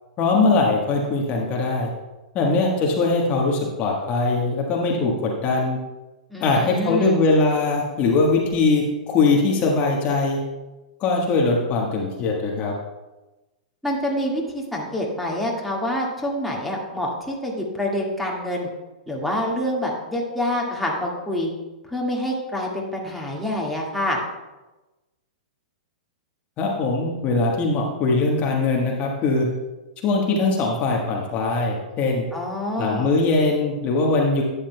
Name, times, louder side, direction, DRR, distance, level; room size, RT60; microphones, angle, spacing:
voice 1, 0.2-1.9 2.3-5.8 6.4-10.4 11.0-12.7 26.6-29.5 30.0-32.3 32.8-34.4, left 3 dB, 35° left, -1 dB, 1.4 m, -21 dB
voice 2, 6.3-7.2 13.8-18.7 19.1-21.5 21.8-24.2 32.3-33.1, left 1 dB, ahead, -3 dB, 1.9 m, -26 dB
11.5 x 8.8 x 2.3 m, 1.1 s
hypercardioid pair, 115°, 4 cm